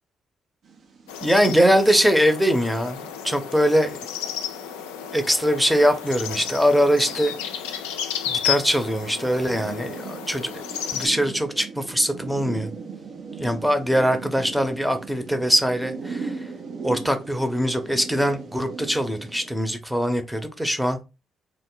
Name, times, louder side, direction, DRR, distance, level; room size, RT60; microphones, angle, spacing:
sound 1, 0.6-19.5, right 4 dB, 60° right, 0.7 m, -39 dB
sound 2, 1.1-11.1, left 10 dB, 80° left, 0.3 m, -32 dB
voice 1, 1.2-4.0 5.1-7.3 8.3-10.6 10.9-12.7 13.4-16.3 16.8-21.0, equal, 5° right, 0.8 m, -22 dB
3.1 x 2.1 x 3.7 m
hypercardioid pair, 40°, 0 cm